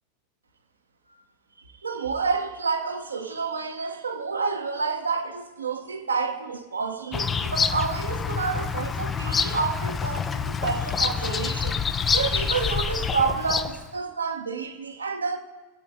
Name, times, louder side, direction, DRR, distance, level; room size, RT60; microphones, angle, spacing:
voice 1, 1.8-11.8 12.1-15.4, right 5 dB, 75° right, 1.0 m, -29 dB
Bird vocalization bird call bird song, 7.1-13.9, left 6 dB, 20° left, 0.5 m, -27 dB
23.0 x 8.4 x 2.8 m
figure-of-eight pair, 90°, 0 cm